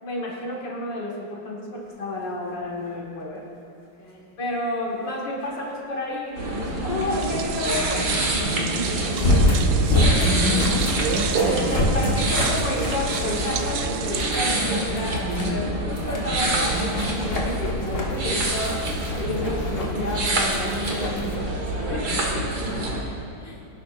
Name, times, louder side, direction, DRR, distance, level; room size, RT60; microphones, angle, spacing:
voice 1, 0.0-3.5 4.4-10.6 11.3-18.9 19.2-22.5, left 2 dB, 75° left, -3 dB, 2.3 m, -31 dB
sound 1, 2.6-2.7 9.1-13.8 14.2-14.5 15.0-15.5 15.9-21.4, left 1 dB, 45° left, 1.6 m, -26 dB
voice 2, 4.0-4.4 10.0-10.7 11.3-12.3 22.5-23.7, left 1 dB, 10° left, -3 dB, 1.7 m, -40 dB
sound 2, 6.4-23.0, right 1 dB, 60° right, 2.0 m, -26 dB
sound 3, 7.1-14.3, right 8 dB, 80° right, 1.3 m, -32 dB
21.5 x 11.5 x 2.5 m, 2.9 s
omnidirectional pair, 2.0 m